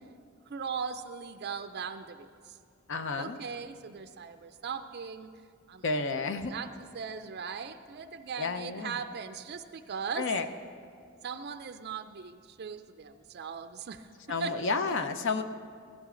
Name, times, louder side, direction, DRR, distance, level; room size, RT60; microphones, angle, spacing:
voice 1, 0.5-2.6 3.2-5.3 5.7-10.3 11.2-14.7, right 6 dB, 50° right, 9 dB, 0.4 m, -39 dB
voice 2, 2.9-3.4 5.8-6.5 8.4-9.0 10.2-10.5 14.3-15.4, left 4 dB, 60° left, 9 dB, 0.7 m, -31 dB
17.0 x 15.0 x 3.8 m, 2.2 s
head